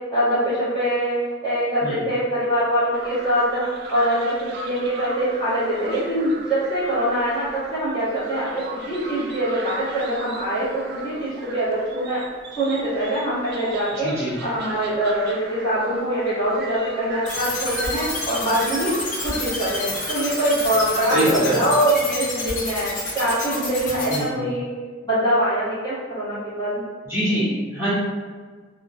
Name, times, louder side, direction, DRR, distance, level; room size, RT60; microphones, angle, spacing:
voice 1, 0.1-1.2 1.4-3.6 3.9-12.2 12.6-14.1 14.4-18.9 19.2-19.8 20.1-21.2 21.5-22.9 23.1-24.7 25.0-26.8, right 1 dB, 20° left, -12 dB, 1.3 m, -23 dB
sound 1, 2.9-21.8, right 2 dB, 55° right, 0.4 m, -38 dB
voice 2, 14.0-14.3 21.1-21.6 24.1-24.4 27.0-27.9, right 1 dB, 15° right, -13 dB, 0.9 m, -23 dB
sound 2, 17.2-24.2, left 2 dB, 45° left, 0.8 m, -29 dB
3.2 x 2.1 x 2.5 m, 1.5 s
head